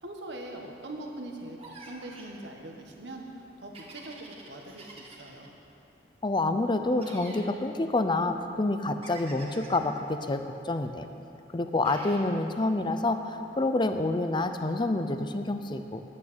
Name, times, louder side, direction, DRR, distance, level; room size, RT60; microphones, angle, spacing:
voice 1, 0.0-1.6 1.8-5.5, right 1 dB, 80° right, 1 dB, 1.6 m, -42 dB
sound 1, 1.6-2.4 3.7-5.5 7.0-7.5 9.0-9.9 11.8-12.3, right 3 dB, 35° right, 1.7 m, -47 dB
voice 2, 6.2-11.1 11.5-16.0, left 2 dB, 25° left, 8 dB, 0.6 m, -28 dB
8.8 x 8.7 x 9.6 m, 2.9 s
head